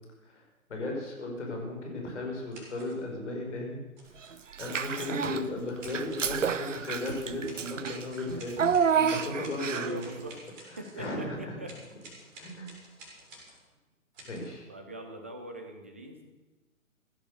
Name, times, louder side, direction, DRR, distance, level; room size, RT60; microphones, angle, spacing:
voice 1, 0.7-3.8 4.3-8.7 8.9-10.0 10.7-11.6 12.4-12.7 14.3-14.6, left 2 dB, 55° left, 1 dB, 5.1 m, -36 dB
sound 1, 2.5-3.0 4.0-4.4 5.8-6.3 7.0-11.1 11.6-13.6 14.1-14.4, right 1 dB, 30° right, 5.8 m, -51 dB
Child speech kid speaking / Bathtub (filling or washing), 4.5-5.5 5.8-10.1, right 7 dB, 60° right, 0.9 m, -29 dB
voice 2, 9.6-11.8 14.7-16.2, right 1 dB, 10° right, 5 dB, 0.5 m, -43 dB
16.0 x 11.5 x 6.7 m, 1.1 s
figure-of-eight pair, 130°, 43 cm